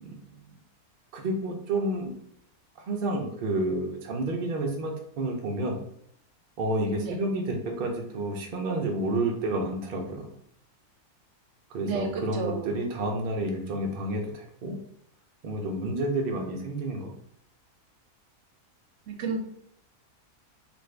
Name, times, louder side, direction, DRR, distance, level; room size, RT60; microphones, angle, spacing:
voice 1, 0.0-0.4 1.1-2.1 2.9-5.8 6.6-10.3 11.7-14.8 15.4-17.1, right 1 dB, 85° right, 1 dB, 0.4 m, -30 dB
voice 2, 11.8-12.7 19.1-19.4, right 5 dB, 65° right, 3 dB, 0.8 m, -31 dB
2.6 x 2.5 x 3.2 m, 0.70 s
omnidirectional pair, 1.6 m